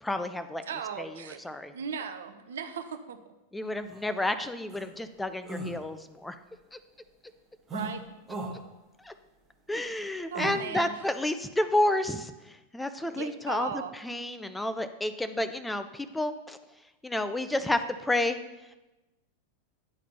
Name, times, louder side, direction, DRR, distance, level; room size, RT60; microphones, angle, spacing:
voice 1, 0.0-0.6 1.0-1.1 1.4-1.7 3.5-6.3 9.1-9.2 9.7-12.3 12.7-13.7 14.0-16.6 17.0-18.4, left 1 dB, 5° left, 9 dB, 0.5 m, -30 dB
voice 2, 0.7-1.4 1.7-3.2 7.7-8.0 10.3-11.0 13.0-13.9, right 7 dB, 65° right, 9 dB, 0.5 m, -37 dB
sound 1, 3.9-4.0 4.7-4.9 5.4-5.8 7.7-7.9 8.3-8.5 10.3-10.6, right 1 dB, 15° right, 1.4 m, -36 dB
9.7 x 4.1 x 4.1 m, 1.0 s
figure-of-eight pair, 90°, 0 cm